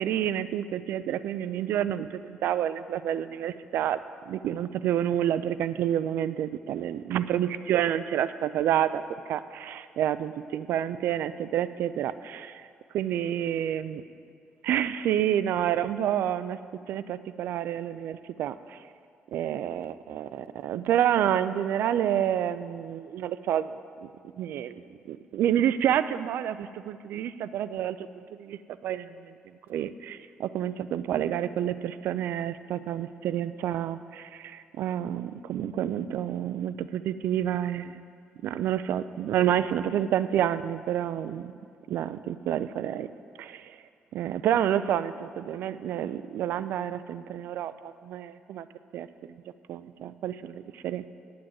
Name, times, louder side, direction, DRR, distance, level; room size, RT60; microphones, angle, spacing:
voice 1, 0.0-4.0 4.3-12.5 12.9-14.0 14.6-16.6 16.9-18.8 19.3-23.7 24.0-24.1 24.4-28.0 28.3-29.3 29.7-38.0 38.4-41.5 41.9-43.1 43.4-43.8 44.1-48.7 48.9-49.3 49.7-51.1, right 10 dB, 75° right, 14 dB, 0.4 m, -29 dB
9.1 x 8.6 x 7.6 m, 2.2 s
cardioid pair, 170°, 4 cm